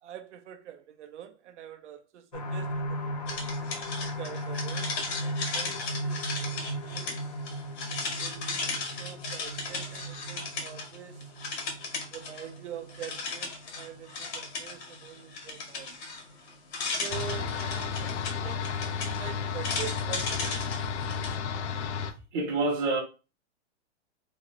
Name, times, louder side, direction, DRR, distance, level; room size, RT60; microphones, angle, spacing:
voice 1, 0.0-3.4 4.0-7.2 8.2-11.3 12.1-16.0 17.0-20.7, right 10 dB, 80° right, 0.6 m, -45 dB
sound 1, 2.3-15.8 16.3-16.4 16.8-16.9, right 1 dB, 35° left, 0.4 m, -37 dB
sound 2, 3.3-11.0 11.2-12.6 12.9-21.3, left 4 dB, 65° left, 1.5 m, -36 dB
sound 3, 17.1-22.1, left 6 dB, 80° left, 0.6 m, -32 dB
voice 2, 22.0-23.0, right 3 dB, 20° right, 0.5 m, -28 dB
3.1 x 2.5 x 2.8 m
hypercardioid pair, 165°, 35 cm